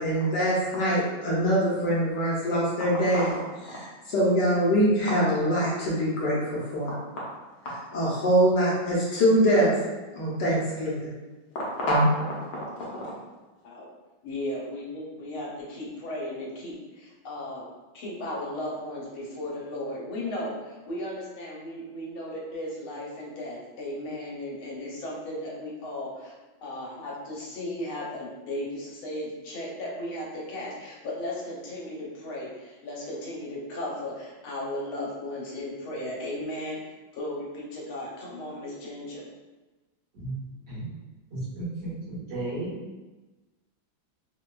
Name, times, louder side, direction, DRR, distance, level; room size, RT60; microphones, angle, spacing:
voice 1, 0.0-6.9 7.6-9.7 10.1-11.1 11.9-12.0 12.9-13.0, equal, 65° left, -6 dB, 1.2 m, -24 dB
voice 2, 14.2-36.8 37.1-39.2, left 1 dB, 85° left, -4 dB, 1.6 m, -36 dB
voice 3, 41.3-42.7, right 2 dB, 65° right, -10 dB, 1.9 m, -34 dB
4.2 x 2.2 x 2.2 m, 1.2 s
omnidirectional pair, 2.2 m